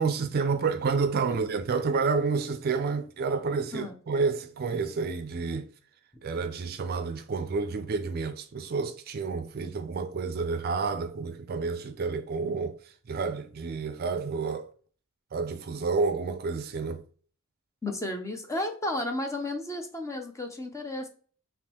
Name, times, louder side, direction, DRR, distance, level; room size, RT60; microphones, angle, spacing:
voice 1, 0.0-5.7 6.2-12.8 13.1-14.7 15.3-17.0, right 4 dB, 45° right, 0.4 m, -29 dB
voice 2, 17.8-21.1, left 1 dB, 15° left, 0.6 m, -33 dB
3.6 x 2.9 x 2.9 m
head